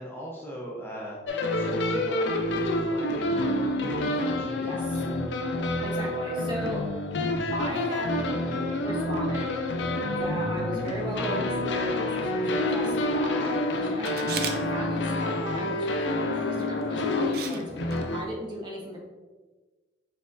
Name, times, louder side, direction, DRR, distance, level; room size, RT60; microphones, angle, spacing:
voice 1, 0.0-4.7, equal, 10° left, -4 dB, 0.5 m, -41 dB
sound 1, 1.3-18.3, left 1 dB, 75° left, 0.4 m, -28 dB
voice 2, 4.6-5.0 5.8-6.8 7.5-8.3 8.8-9.5 10.2-19.1, right 1 dB, 25° right, -3 dB, 0.8 m, -37 dB
Camera, 14.0-14.6 16.6-16.8 17.3-17.6 17.9-18.0, right 7 dB, 55° right, 0.4 m, -34 dB
4.5 x 3.9 x 2.5 m, 1.3 s
head